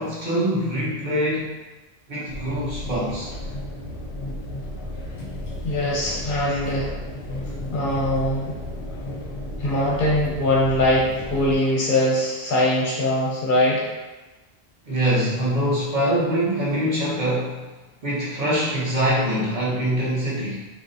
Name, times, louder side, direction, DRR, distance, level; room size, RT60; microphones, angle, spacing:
voice 1, 0.0-1.5 2.1-3.3 14.9-17.7 18.0-20.6, equal, 50° right, -7 dB, 0.8 m, -24 dB
sound 1, 2.3-11.6, left 1 dB, 80° left, 0.9 m, -33 dB
voice 2, 5.6-6.9 7.7-8.6 9.6-13.9, left 1 dB, 55° left, -5 dB, 0.8 m, -22 dB
2.5 x 2.0 x 2.5 m, 1.2 s
omnidirectional pair, 1.1 m